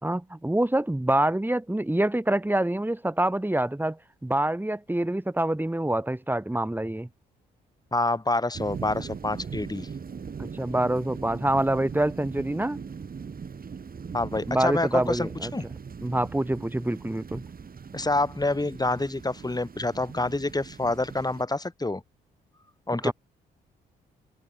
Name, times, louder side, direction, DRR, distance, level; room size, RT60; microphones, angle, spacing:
voice 1, 0.0-7.1 10.4-12.8 14.5-15.5 16.0-17.4 22.9-23.1, right 1 dB, 10° right, 4.0 m, -26 dB
voice 2, 7.9-9.9 14.1-15.6 17.9-22.0 22.9-23.1, left 2 dB, 20° left, 5.9 m, -27 dB
sound 1, 8.5-21.4, right 6 dB, 45° right, 3.3 m, -40 dB
hypercardioid pair, 50°, 21 cm